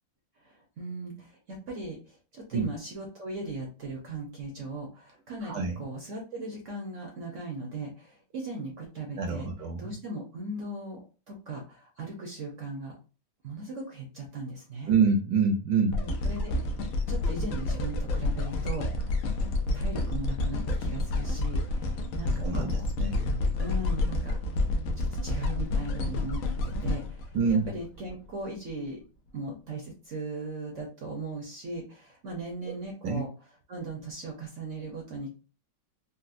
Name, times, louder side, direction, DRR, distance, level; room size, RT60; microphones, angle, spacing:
voice 1, 0.4-9.5 9.8-11.0 11.3-13.0 13.4-14.9 15.9-16.7 17.1-19.2 19.7-22.8 23.6-24.6 25.0-29.0 29.3-33.3 33.7-35.3, right 2 dB, 55° right, 0 dB, 0.9 m, -38 dB
voice 2, 5.4-5.8 9.2-9.9 14.9-16.0 22.4-23.6 27.3-27.7 33.0-33.2, right 5 dB, 75° right, 3 dB, 1.3 m, -27 dB
sound 1, 15.9-28.1 28.7-28.8, left 2 dB, 70° left, 0.7 m, -29 dB
4.0 x 2.2 x 2.5 m, 0.34 s
omnidirectional pair, 2.0 m